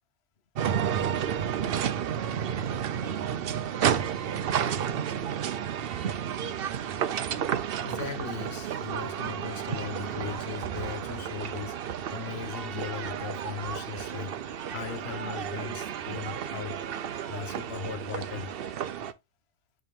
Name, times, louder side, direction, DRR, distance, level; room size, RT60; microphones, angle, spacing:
sound 1, 0.5-19.1, right 9 dB, 55° right, 0.7 m, -31 dB
voice 1, 7.8-16.8 17.3-18.5, left 8 dB, 60° left, 1.1 m, -38 dB
Yell / Crying sobbing, 10.0-10.8 12.1-13.1 14.2-15.1 15.4-16.4 16.9-17.8, right 3 dB, 30° right, 0.4 m, -51 dB
8.3 x 3.4 x 3.5 m
omnidirectional pair, 1.3 m